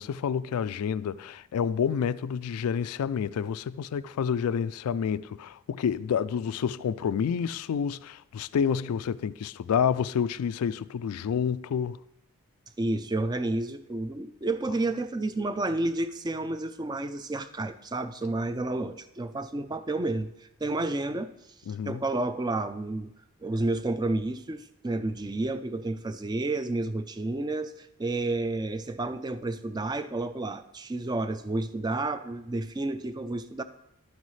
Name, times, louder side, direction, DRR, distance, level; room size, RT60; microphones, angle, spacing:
voice 1, 0.0-12.0 18.7-18.9 21.7-22.0, left 7 dB, 85° left, 0.3 m, -29 dB
voice 2, 12.8-20.3 20.6-21.3 21.9-23.1 23.4-33.6, right 2 dB, 20° right, 0.3 m, -30 dB
11.5 x 9.4 x 3.2 m
head